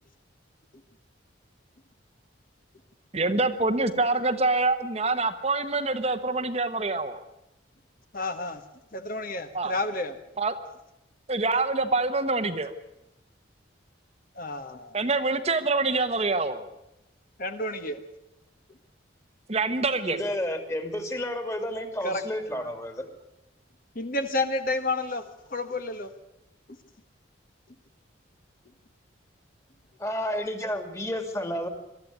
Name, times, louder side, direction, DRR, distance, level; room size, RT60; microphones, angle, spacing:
voice 1, 3.1-7.2 9.5-9.7 10.4-10.6 11.3-12.7 14.9-16.7 19.5-20.2, right 3 dB, 35° right, 8 dB, 1.1 m, -25 dB
voice 2, 8.1-8.6 8.9-10.1 14.3-15.0 17.4-18.0 22.0-22.2 22.6-22.7 23.9-26.1, left 2 dB, 45° left, 8 dB, 1.5 m, -30 dB
voice 3, 20.1-23.1 30.0-31.7, left 1 dB, 15° left, 7 dB, 2.5 m, -31 dB
23.0 x 13.5 x 9.5 m, 0.92 s
head